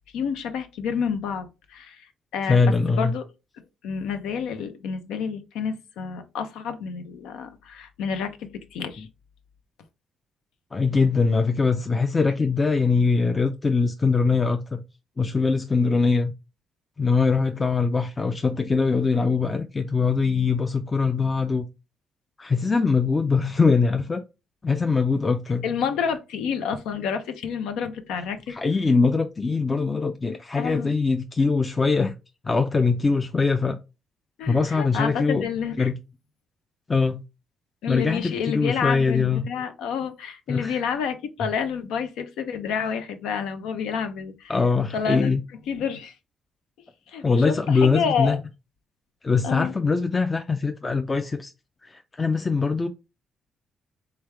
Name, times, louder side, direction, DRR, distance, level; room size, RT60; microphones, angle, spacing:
voice 1, 0.1-2.6 3.0-3.2 3.8-9.1 25.6-28.5 30.6-30.9 34.4-35.9 37.8-44.6 44.9-45.3 45.7-46.1 47.1-48.4 49.4-49.7, left 6 dB, 90° left, 0.6 m, -29 dB
voice 2, 2.5-3.1 10.7-14.8 15.2-16.3 17.0-21.7 22.4-24.2 24.6-25.7 28.5-32.1 32.4-33.8 34.5-35.4 35.8-36.0 36.9-37.2 37.9-39.5 40.5-40.8 44.5-45.4 47.2-48.4 49.2-51.5 51.8-52.9, left 4 dB, 25° left, 0.4 m, -22 dB
3.5 x 3.3 x 3.3 m
cardioid pair, 90°, 0 cm